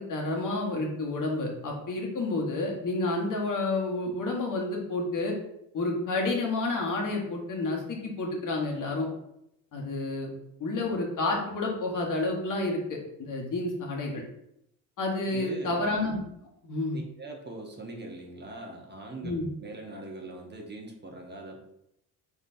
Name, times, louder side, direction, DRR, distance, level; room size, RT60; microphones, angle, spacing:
voice 1, 0.0-5.3 5.7-9.1 9.7-10.3 10.6-14.2 15.0-16.2 16.6-17.0 19.2-19.5, left 2 dB, 50° left, 0 dB, 1.4 m, -30 dB
voice 2, 15.2-15.9 16.9-19.3 19.6-21.6, right 2 dB, 25° right, 1 dB, 0.9 m, -41 dB
4.0 x 3.8 x 2.7 m, 0.79 s
supercardioid pair, 65°, 40 cm